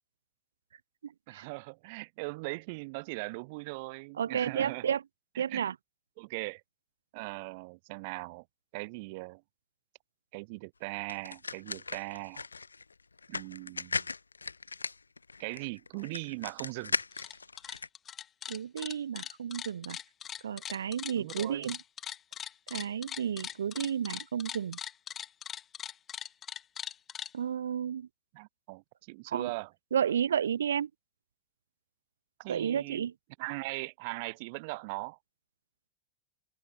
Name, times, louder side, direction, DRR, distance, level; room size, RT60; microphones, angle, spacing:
voice 1, 1.3-4.9 5.3-5.7 6.2-6.6 7.1-8.4 8.7-9.4 10.3-12.5 13.3-14.1 15.4-16.9 21.2-21.7 28.3-29.7 32.4-33.0 33.4-35.2, right 27 dB, 55° right, 2.7 m, -39 dB
voice 2, 4.2-5.0 5.4-5.7 18.5-20.0 20.4-21.8 22.7-24.8 27.3-28.1 29.3-29.5 29.9-30.9 32.5-33.1, right 8 dB, 75° right, 0.7 m, -32 dB
sound 1, 11.1-17.9, left 4 dB, 85° left, 1.1 m, -38 dB
sound 2, 17.0-17.3 17.6-27.3, left 9 dB, 30° left, 1.8 m, -40 dB
figure-of-eight pair, 95°, 0 cm